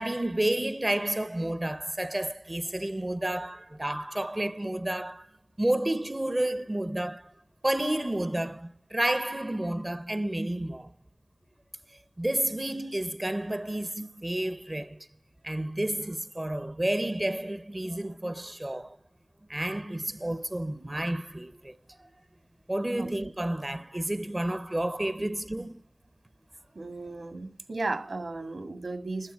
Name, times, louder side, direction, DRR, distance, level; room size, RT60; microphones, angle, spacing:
voice 1, 0.0-5.3 5.6-7.3 7.6-10.9 12.2-15.1 15.4-19.0 19.5-22.1 22.7-25.8, right 1 dB, 20° right, 0.7 m, -30 dB
voice 2, 26.8-29.3, right 2 dB, 65° right, 2.1 m, -35 dB
16.5 x 13.0 x 4.6 m
wide cardioid pair, 90°, 0 cm